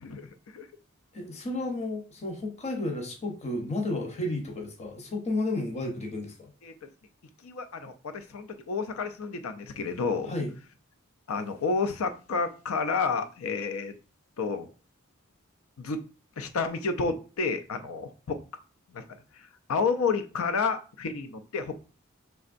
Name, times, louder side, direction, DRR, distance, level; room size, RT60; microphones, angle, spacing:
voice 1, 0.0-0.7 6.6-6.9 7.4-10.3 11.3-14.0 14.4-14.7 15.8-16.0 16.4-18.4 18.9-19.0 19.3-21.7, left 4 dB, 75° left, 9 dB, 0.5 m, -30 dB
voice 2, 1.1-6.5 10.3-10.5, left 2 dB, 30° left, 3 dB, 0.8 m, -32 dB
5.2 x 3.4 x 2.5 m, 0.36 s
head